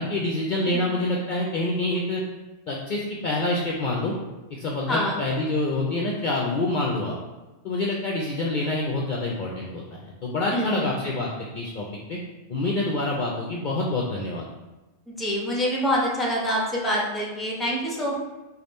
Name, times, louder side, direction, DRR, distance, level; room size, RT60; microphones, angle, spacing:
voice 1, 0.0-2.2 2.7-4.1 4.5-7.1 7.6-12.2 12.5-14.5, left 2 dB, 55° left, -3 dB, 0.6 m, -27 dB
voice 2, 4.9-5.2 10.5-10.9 15.1-18.1, equal, ahead, -3 dB, 0.8 m, -26 dB
5.1 x 2.5 x 4.1 m, 1.1 s
omnidirectional pair, 1.2 m